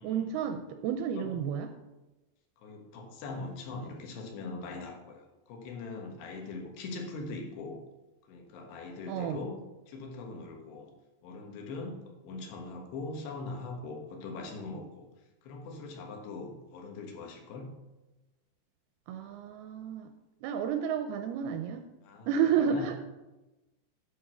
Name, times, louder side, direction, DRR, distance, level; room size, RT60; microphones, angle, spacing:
voice 1, 0.0-1.7 9.1-9.4 19.1-20.1 20.4-21.8 22.3-23.0, right 7 dB, 80° right, 7 dB, 2.3 m, -31 dB
voice 2, 2.6-7.8 8.3-10.9 11.2-15.1 15.4-17.8 22.0-23.0, left 3 dB, 80° left, 2 dB, 3.4 m, -41 dB
10.5 x 4.4 x 5.9 m, 1.0 s
omnidirectional pair, 4.8 m